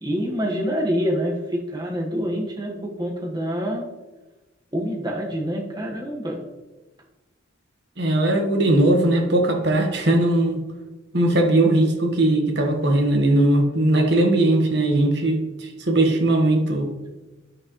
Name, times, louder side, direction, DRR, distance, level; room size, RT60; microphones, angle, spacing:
voice 1, 0.0-3.8 4.7-6.4, equal, 20° right, -1 dB, 1.3 m, -26 dB
voice 2, 8.0-10.6 11.1-16.9, right 1 dB, 55° right, 2 dB, 1.3 m, -19 dB
10.5 x 6.1 x 3.1 m, 1.1 s
head